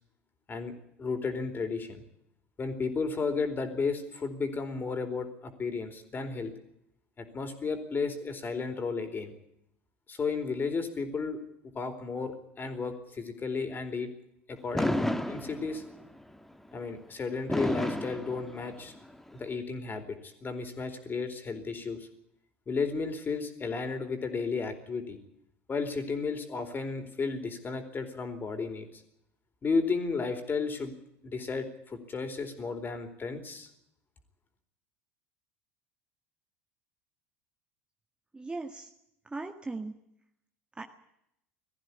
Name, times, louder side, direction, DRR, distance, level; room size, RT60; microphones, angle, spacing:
voice 1, 1.0-2.0 2.6-6.5 7.2-9.3 10.1-11.4 11.7-14.1 14.5-15.8 16.7-18.9 19.3-22.1 22.7-25.2 25.7-29.0 29.6-30.9 31.2-33.7, left 4 dB, 25° left, 7 dB, 4.2 m, -33 dB
Fireworks, 14.7-16.1 17.5-19.0, left 1 dB, 5° left, 1.5 m, -31 dB
voice 2, 38.3-38.9 39.3-39.9 40.8-40.9, right 3 dB, 15° right, 4 dB, 1.7 m, -38 dB
20.0 x 15.0 x 9.8 m, 0.79 s
figure-of-eight pair, 70°, 7 cm